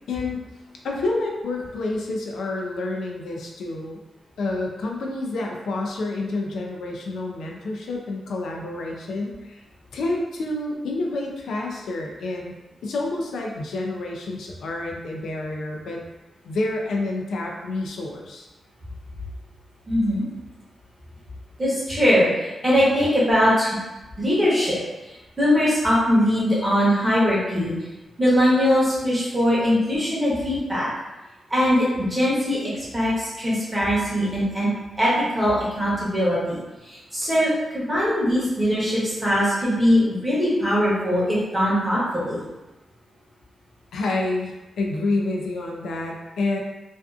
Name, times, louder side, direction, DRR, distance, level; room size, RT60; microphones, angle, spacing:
voice 1, 0.1-0.4 0.8-4.0 4.4-9.6 9.9-12.5 12.8-16.0 16.4-18.5 43.9-46.6, left 2 dB, 85° left, 0 dB, 0.4 m, -28 dB
voice 2, 19.9-20.2 21.6-23.8 24.2-24.8 25.1-27.7 28.2-30.9 31.5-34.7 35.0-42.4, equal, 10° right, -8 dB, 0.8 m, -21 dB
2.5 x 2.4 x 2.4 m, 1.1 s
wide cardioid pair, 170°, 0 cm